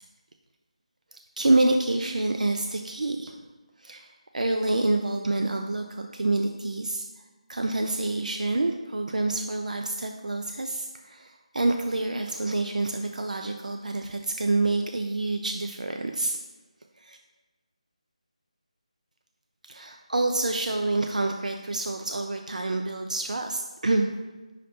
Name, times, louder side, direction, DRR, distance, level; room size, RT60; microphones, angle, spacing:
voice 1, 1.1-3.3 3.8-7.0 7.5-16.4 17.0-17.2 19.7-24.1, right 2 dB, 85° right, 4 dB, 0.5 m, -27 dB
5.6 x 5.1 x 4.1 m, 1.2 s
figure-of-eight pair, 175°, 4 cm